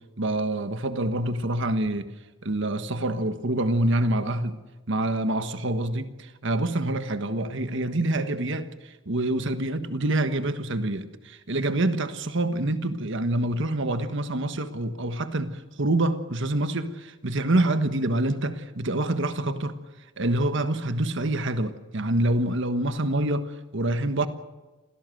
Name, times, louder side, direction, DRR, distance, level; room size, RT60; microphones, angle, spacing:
voice 1, 0.0-2.1 2.4-4.6 4.9-19.8 20.2-24.3, right 1 dB, 65° right, 1.5 m, -26 dB
27.0 x 17.0 x 7.8 m
head